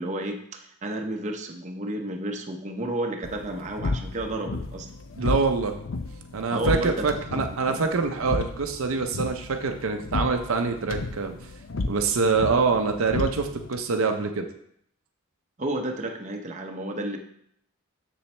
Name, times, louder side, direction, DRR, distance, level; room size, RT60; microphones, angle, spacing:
voice 1, 0.0-4.9 6.5-7.2 7.7-7.8 15.6-17.2, right 1 dB, 35° right, 3 dB, 0.7 m, -32 dB
sound 1, 3.2-13.8, left 3 dB, 60° left, 0.6 m, -33 dB
voice 2, 5.2-5.8 6.3-11.4 11.9-14.5, right 4 dB, 65° right, 5 dB, 0.6 m, -25 dB
7.1 x 7.0 x 3.3 m, 0.70 s
head